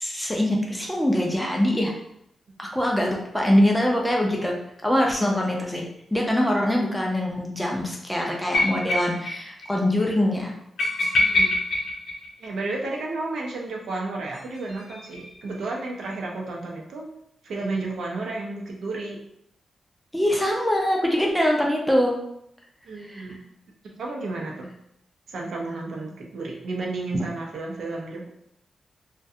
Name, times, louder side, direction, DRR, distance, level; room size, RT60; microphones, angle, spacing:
voice 1, 0.0-1.9 2.6-4.6 4.8-10.5 20.1-22.2 23.1-23.2, left 1 dB, 5° left, -1 dB, 0.4 m, -23 dB
sound 1, 8.5-9.4 9.6-9.7 10.0-10.1 10.8-12.8 14.3-15.6, left 2 dB, 60° left, 0.5 m, -25 dB
voice 2, 11.1-11.6 12.4-17.1 17.4-19.2 22.8-23.4 23.8-24.7 25.3-28.3, right 3 dB, 75° right, -1 dB, 0.5 m, -32 dB
2.3 x 2.2 x 2.7 m, 0.74 s
wide cardioid pair, 160°, 0 cm